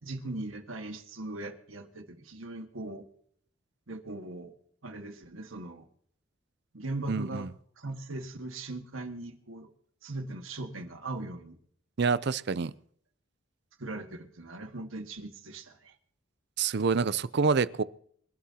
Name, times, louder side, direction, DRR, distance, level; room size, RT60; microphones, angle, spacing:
voice 1, 0.0-3.0 3.9-4.5 4.8-5.9 6.7-7.5 7.8-9.7 10.0-11.6 13.8-15.9, right 2 dB, 75° right, 1.7 m, -39 dB
voice 2, 7.1-7.5 12.0-12.7 16.6-17.8, right 5 dB, 55° right, 0.5 m, -27 dB
27.0 x 11.5 x 2.9 m
head